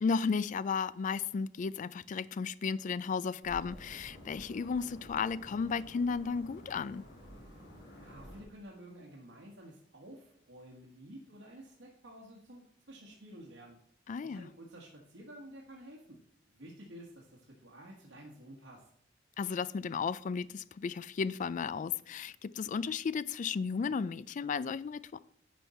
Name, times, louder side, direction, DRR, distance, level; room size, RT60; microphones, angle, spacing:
voice 1, 0.0-7.0 14.1-14.5 19.4-25.2, left 5 dB, 45° left, 0.3 m, -34 dB
sound 1, 3.4-8.4, equal, 65° left, 3.0 m, -51 dB
voice 2, 8.0-13.8 14.2-16.2 16.5-18.9, right 1 dB, 80° right, 1.5 m, -51 dB
10.0 x 5.3 x 4.2 m
head